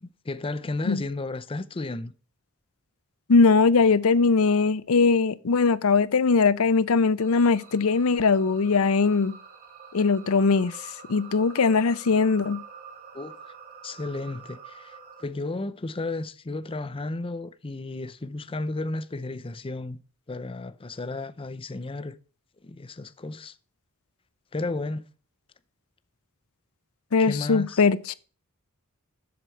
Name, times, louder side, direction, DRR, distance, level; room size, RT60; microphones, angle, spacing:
voice 1, 0.0-2.1 13.1-13.5 13.8-20.0 20.3-22.2 22.6-23.5 24.5-25.0 27.2-27.8, left 2 dB, 25° left, 0.5 m, -33 dB
voice 2, 3.3-9.3 9.9-10.7 11.1-12.6 27.1-28.1, left 4 dB, 70° left, 0.6 m, -21 dB
sound 1, 7.2-15.2, right 6 dB, 45° right, 2.6 m, -47 dB
7.8 x 6.7 x 4.4 m
head